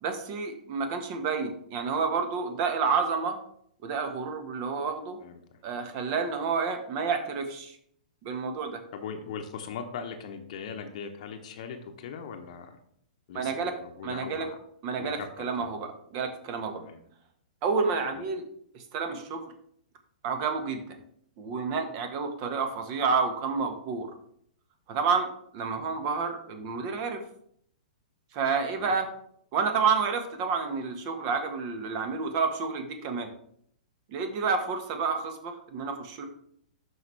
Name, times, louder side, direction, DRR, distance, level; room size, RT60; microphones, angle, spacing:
voice 1, 0.0-3.4 3.8-5.2 5.6-7.8 8.2-8.8 13.3-13.7 14.0-14.5 14.8-16.8 17.6-18.4 18.7-19.4 20.2-21.0 21.4-24.1 24.9-25.3 25.5-27.2 28.3-29.1 29.5-33.3 34.1-36.3, right 5 dB, 40° right, 6 dB, 1.4 m, -29 dB
voice 2, 8.9-12.8 13.3-13.5 13.8-14.6 15.0-15.7 16.8-17.0 18.1-18.2 28.7-28.9, left 6 dB, 55° left, 5 dB, 0.9 m, -40 dB
12.0 x 4.8 x 3.3 m, 0.68 s
figure-of-eight pair, 110°, 4 cm